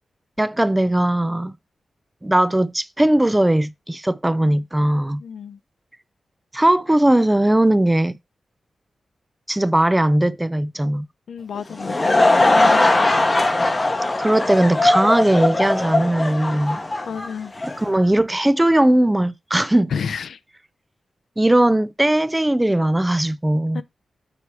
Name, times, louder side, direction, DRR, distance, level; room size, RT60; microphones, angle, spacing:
voice 1, 0.4-1.5 2.2-5.2 6.5-8.2 9.5-11.1 14.2-16.8 17.6-19.9 21.4-23.8, right 1 dB, 10° right, 0.3 m, -18 dB
voice 2, 5.2-5.6 11.3-13.2 17.1-17.5 19.9-20.4 23.7-23.8, left 6 dB, 80° left, 0.5 m, -31 dB
Laughter / Crowd, 11.6-17.9, left 2 dB, 25° left, 0.8 m, -19 dB
9.6 x 3.4 x 4.6 m
wide cardioid pair, 145°, 0 cm